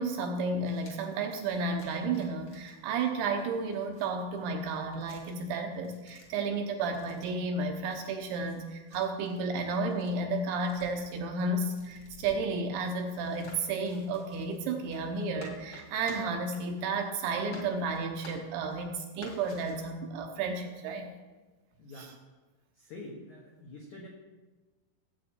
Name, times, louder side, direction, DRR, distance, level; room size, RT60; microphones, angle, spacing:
voice 1, 0.0-21.1 22.0-22.1, right 3 dB, 75° right, 3 dB, 2.9 m, -32 dB
sound 1, 0.5-17.2 17.5-18.8 19.1-19.7, left 2 dB, 50° left, 1.5 m, -54 dB
voice 2, 21.8-22.1 22.7-24.1, left 2 dB, 80° left, -2 dB, 1.7 m, -46 dB
17.5 x 8.3 x 4.4 m, 1.3 s
omnidirectional pair, 5.9 m